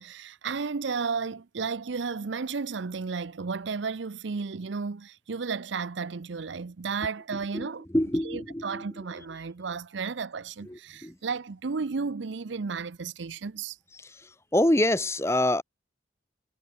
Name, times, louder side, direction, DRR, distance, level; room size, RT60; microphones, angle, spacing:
voice 1, 0.0-7.8 8.2-13.8, right 5 dB, 75° right, 0.6 m, -33 dB
voice 2, 7.5-8.8 10.7-11.2 14.0-15.6, left 1 dB, 15° left, 1.2 m, -26 dB
head